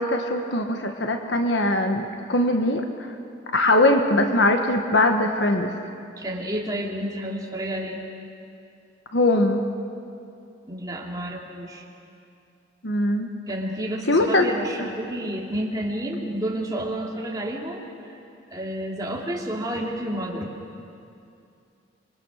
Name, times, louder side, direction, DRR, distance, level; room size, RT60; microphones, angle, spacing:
voice 1, 0.0-2.8 3.5-5.7 9.1-9.7 12.8-13.3 14.1-14.5 14.8-14.9, left 1 dB, 60° left, 5 dB, 1.3 m, -21 dB
voice 2, 6.2-8.1 10.7-11.8 13.5-18.2 18.5-20.5, right 1 dB, 20° right, -2 dB, 2.7 m, -30 dB
26.5 x 23.0 x 6.4 m, 2.5 s
head